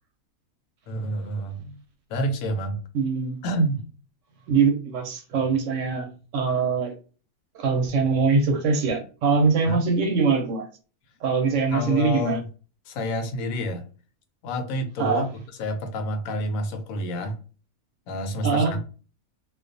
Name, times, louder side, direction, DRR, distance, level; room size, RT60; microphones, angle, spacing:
voice 1, 0.9-1.8 2.1-2.8 3.4-3.8 9.6-9.8 11.7-12.5 12.9-13.8 14.4-15.3 15.6-17.4 18.1-18.8, equal, 75° left, 1.0 m, -28 dB
voice 2, 2.9-3.4 4.5-6.9 7.5-10.7 11.2-12.4 15.0-15.3 18.4-18.7, right 5 dB, 65° right, 0.9 m, -23 dB
2.4 x 2.2 x 2.5 m
omnidirectional pair, 1.5 m